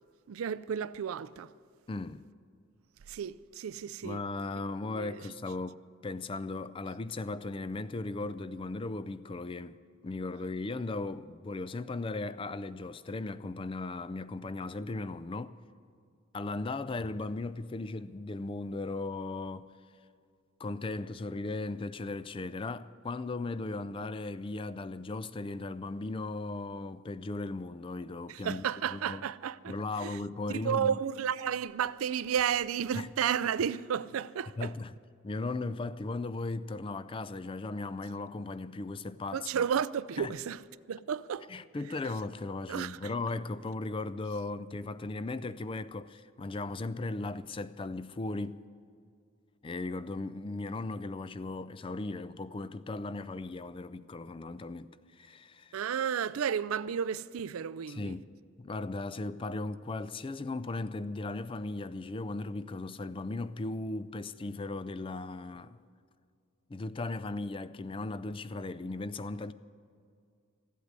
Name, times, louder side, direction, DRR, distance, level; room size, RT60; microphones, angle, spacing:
voice 1, 0.3-1.5 3.1-4.2 4.9-5.2 28.3-29.7 30.0-30.2 30.5-34.7 39.3-40.6 40.9-41.5 42.7-43.0 55.7-58.2, right 8 dB, 85° right, 0.4 m, -32 dB
voice 2, 1.9-2.2 4.0-9.8 10.0-15.6 16.3-19.7 20.6-28.6 28.9-29.2 29.7-30.9 32.9-33.1 34.6-34.9 35.2-39.6 40.2-40.3 41.5-48.6 49.6-55.8 57.9-58.3 58.6-65.8 66.7-69.5, left 2 dB, 25° left, 0.3 m, -37 dB
14.5 x 8.3 x 9.6 m
head